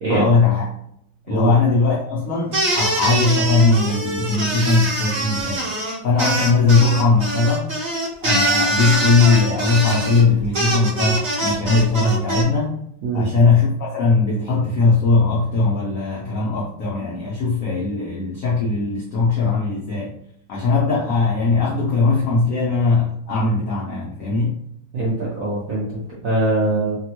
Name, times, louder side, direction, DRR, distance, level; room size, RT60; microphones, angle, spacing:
voice 1, 0.1-0.6 1.3-5.6 6.0-7.7 8.2-12.8 13.1-20.1 20.5-24.6, left 4 dB, 80° left, -5 dB, 0.7 m, -19 dB
sound 1, 2.5-12.4, right 1 dB, 40° right, 0.9 m, -23 dB
voice 2, 24.9-27.0, right 1 dB, 70° right, -5 dB, 0.8 m, -22 dB
3.4 x 2.2 x 2.9 m, 0.71 s
omnidirectional pair, 2.3 m